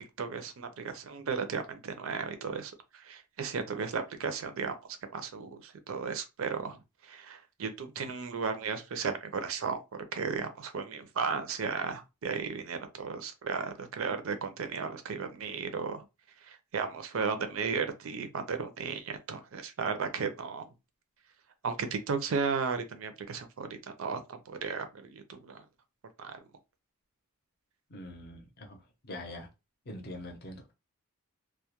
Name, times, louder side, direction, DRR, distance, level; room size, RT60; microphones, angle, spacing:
voice 1, 0.2-4.8 5.0-6.8 7.1-9.8 10.1-16.0 16.5-20.6 21.6-25.6 26.2-26.4, right 5 dB, 65° right, 0.4 m, -35 dB
voice 2, 27.9-29.5 29.9-30.7, left 1 dB, 45° left, 0.6 m, -44 dB
2.2 x 2.1 x 2.8 m
head